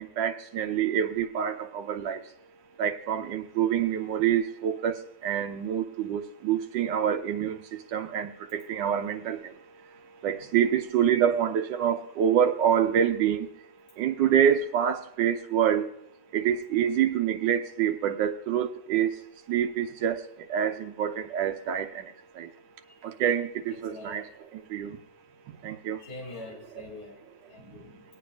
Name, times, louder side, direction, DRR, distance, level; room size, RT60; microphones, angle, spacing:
voice 1, 0.2-2.2 2.8-4.9 5.2-7.6 7.9-9.4 10.2-13.5 14.0-15.9 16.3-19.1 19.5-20.1 20.5-21.9 22.4-22.5 23.2-23.5 23.8-24.2 24.7-24.9 25.6-26.0, right 9 dB, 85° right, 5 dB, 1.5 m, -26 dB
voice 2, 23.9-24.2 26.0-27.2 27.5-28.0, left 2 dB, 35° left, -5 dB, 3.2 m, -43 dB
23.0 x 8.7 x 2.5 m, 0.73 s
omnidirectional pair, 1.9 m